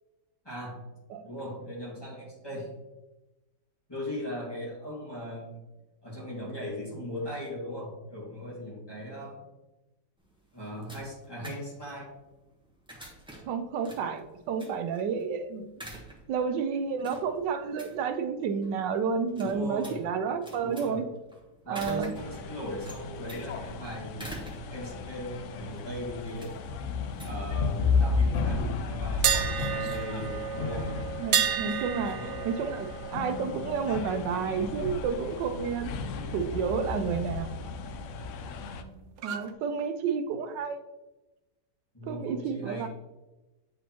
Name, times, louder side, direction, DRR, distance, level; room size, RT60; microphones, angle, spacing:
voice 1, 0.4-0.9 1.2-2.8 3.9-5.7 6.0-9.5 10.5-12.1 19.4-20.0 20.6-21.0 21.6-26.6 27.2-31.0 32.1-32.5 38.5-39.1 41.9-42.9, equal, 15° left, -6 dB, 2.0 m, -38 dB
sound 1, 10.2-28.2, right 1 dB, 5° right, 0.9 m, -49 dB
voice 2, 13.5-15.7 16.3-21.0 21.7-22.1 31.2-32.2 32.4-35.9 36.3-37.6 39.2-40.8 42.1-42.9, right 6 dB, 90° right, 8 dB, 1.3 m, -30 dB
sound 2, 22.2-38.8, left 4 dB, 75° left, 0.7 m, -33 dB
sound 3, 29.2-35.1 35.4-35.7 39.2-39.5, right 9 dB, 70° right, 0.9 m, -32 dB
8.4 x 4.1 x 3.0 m, 1.0 s
omnidirectional pair, 1.9 m